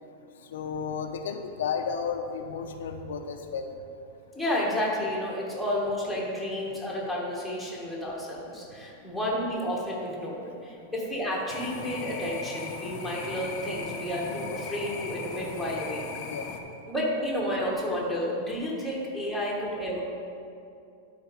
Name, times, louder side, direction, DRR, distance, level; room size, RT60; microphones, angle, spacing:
voice 1, 0.5-3.7 14.1-14.4 16.3-16.5, left 6 dB, 85° left, 5 dB, 0.7 m, -33 dB
voice 2, 4.3-16.2 16.9-20.0, equal, ahead, -5 dB, 1.3 m, -31 dB
sound 1, 11.5-16.6, left 5 dB, 35° left, 0.7 m, -38 dB
11.5 x 4.1 x 5.0 m, 2.6 s
supercardioid pair, 170°, 0 cm